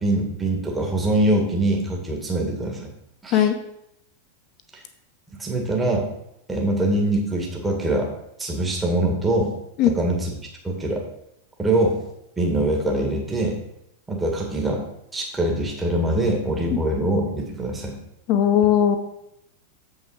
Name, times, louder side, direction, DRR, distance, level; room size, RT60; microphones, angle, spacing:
voice 1, 0.0-2.8 3.2-3.4 4.7-4.8 5.4-6.1 6.5-8.1 8.4-9.5 9.8-10.3 10.6-11.0 11.6-12.0 12.4-13.6 14.1-14.8 15.1-18.0, right 1 dB, 10° right, 0 dB, 1.8 m, -23 dB
voice 2, 18.3-19.0, left 10 dB, 40° left, 7 dB, 1.0 m, -17 dB
7.6 x 5.6 x 4.9 m, 0.79 s
figure-of-eight pair, 90°, 0 cm